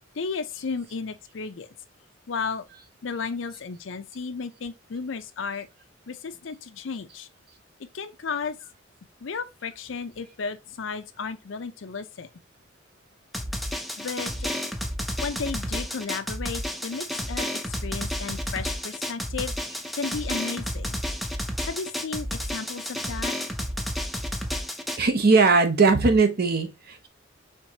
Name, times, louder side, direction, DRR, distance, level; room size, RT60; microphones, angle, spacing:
voice 1, 0.1-1.7 2.3-2.6 3.0-5.7 6.1-7.3 7.8-8.6 9.2-12.3 14.0-14.5 15.2-19.5 19.9-21.0 21.6-23.3, left 5 dB, 80° left, 0.5 m, -34 dB
Drum, 13.3-25.0, equal, ahead, 0.5 m, -31 dB
voice 2, 25.0-27.1, right 4 dB, 55° right, 0.8 m, -20 dB
4.6 x 3.6 x 2.8 m
head